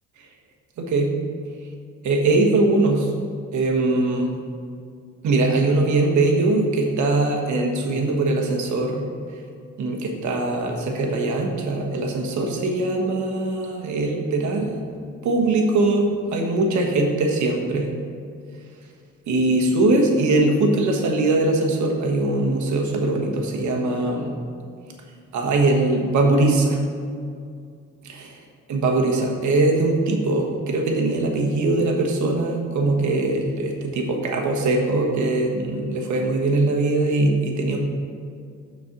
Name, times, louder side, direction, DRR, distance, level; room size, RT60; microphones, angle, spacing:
voice 1, 0.8-1.1 2.0-3.1 3.5-4.3 5.2-9.0 9.8-14.8 15.2-17.9 19.3-24.3 25.3-26.8 28.1-28.3 28.7-37.8, right 2 dB, 70° right, 1 dB, 1.3 m, -21 dB
6.3 x 4.6 x 5.9 m, 2.3 s
cardioid pair, 90°, 30 cm